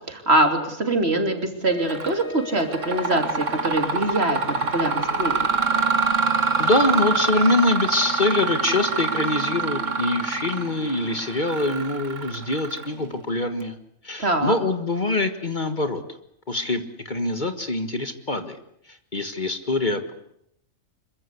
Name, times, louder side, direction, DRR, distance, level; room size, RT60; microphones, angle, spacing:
voice 1, 0.1-5.4 14.2-14.6, right 2 dB, 55° right, 5 dB, 3.4 m, -23 dB
Wind instrument woodwind instrument, 1.6-9.5, left 7 dB, 85° left, 4.2 m, -41 dB
Mechanisms, 1.9-2.2 2.6-13.1, right 5 dB, 70° right, 2.0 m, -25 dB
voice 2, 6.6-13.8 14.0-16.0 16.5-18.6 18.9-20.1, left 2 dB, 35° left, 8 dB, 1.7 m, -24 dB
26.0 x 23.0 x 8.4 m, 0.76 s
omnidirectional pair, 1.3 m